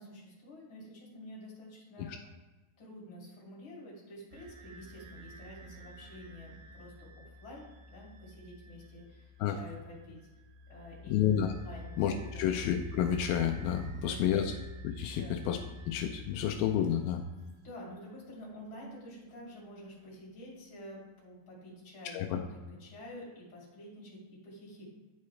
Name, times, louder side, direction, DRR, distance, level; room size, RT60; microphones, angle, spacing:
voice 1, 0.0-2.2 2.8-10.3 10.7-11.2 11.6-12.0 12.3-12.5 13.9-14.6 15.1-15.5 17.6-24.9, left 1 dB, 35° left, -5 dB, 2.9 m, -49 dB
sound 1, 4.3-17.4, equal, 80° right, 2.5 m, -48 dB
voice 2, 11.1-11.5 12.0-14.5 14.8-15.6 15.9-17.2 22.1-22.4, left 9 dB, 85° left, 3 dB, 2.4 m, -30 dB
11.0 x 4.7 x 3.2 m, 1.2 s
omnidirectional pair, 4.2 m